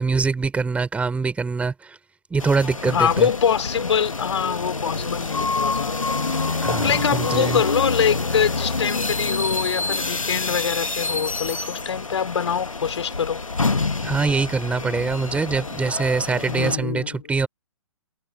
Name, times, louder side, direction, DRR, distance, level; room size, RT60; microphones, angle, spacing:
voice 1, 0.0-2.0 2.3-3.3 6.6-7.6 14.0-17.5, right 4 dB, 10° right, 5.1 m, -24 dB
sound 1, 2.4-16.8, left 3 dB, 85° left, 1.8 m, -27 dB
voice 2, 2.8-6.0 6.8-13.4 16.5-17.2, left 7 dB, 60° left, 4.2 m, -24 dB
figure-of-eight pair, 125°, 17 cm